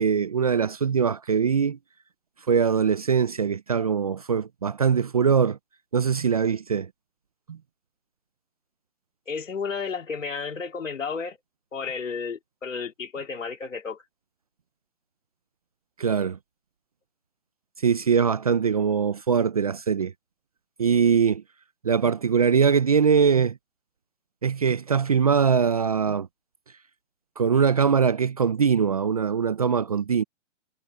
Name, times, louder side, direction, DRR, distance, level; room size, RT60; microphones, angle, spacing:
voice 1, 0.0-1.8 2.5-5.6 5.9-6.9 7.5-7.6 16.0-16.4 17.8-20.1 20.8-21.4 21.8-23.6 24.4-26.3 27.4-30.2, right 6 dB, 30° right, 0.4 m, -22 dB
voice 2, 9.3-11.4 11.7-14.0, left 5 dB, 80° left, 3.9 m, -32 dB
hypercardioid pair, 155°, 38 cm